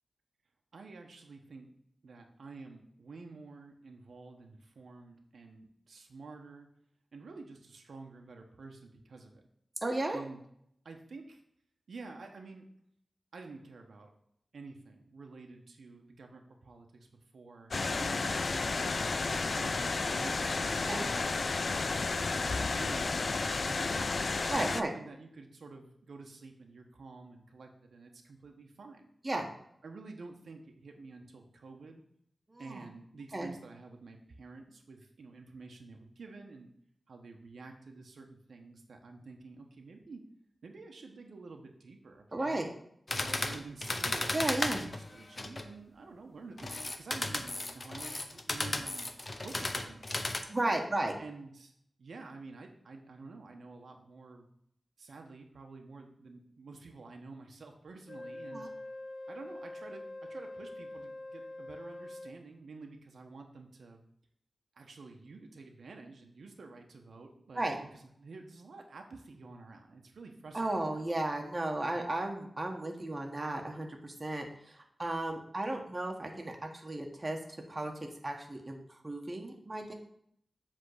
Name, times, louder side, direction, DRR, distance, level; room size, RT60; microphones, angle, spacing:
voice 1, 0.7-1.7 2.0-6.7 7.1-9.4 10.1-10.4 10.8-11.4 11.9-12.6 13.3-14.1 14.5-17.1 17.3-17.7 18.1-23.1 23.7-24.3 24.6-29.1 29.8-32.0 32.6-36.7 37.1-40.2 40.6-42.7 43.1-49.1 49.4-50.4 51.2-51.7 52.0-54.4 55.0-58.7 59.3-64.1 64.7-70.8, right 3 dB, 90° right, 3 dB, 1.1 m, -49 dB
voice 2, 9.8-10.2 17.9-18.1 20.9-21.0 24.5-24.9 29.2-29.5 32.5-32.8 33.3-33.5 42.3-42.7 44.3-44.8 50.5-51.1 58.5-58.7 67.5-67.7 70.5-77.4 77.7-77.9 78.2-79.9, right 2 dB, 25° right, 2 dB, 1.2 m, -34 dB
sound 1, 17.7-24.8, left 3 dB, 50° left, 0.3 m, -32 dB
sound 2, 43.1-45.7 46.6-50.4, left 2 dB, 35° left, 0.8 m, -35 dB
Wind instrument woodwind instrument, 58.1-62.4, left 1 dB, 80° left, 1.2 m, -44 dB
7.6 x 3.7 x 6.6 m, 0.70 s
wide cardioid pair, 120°, 0 cm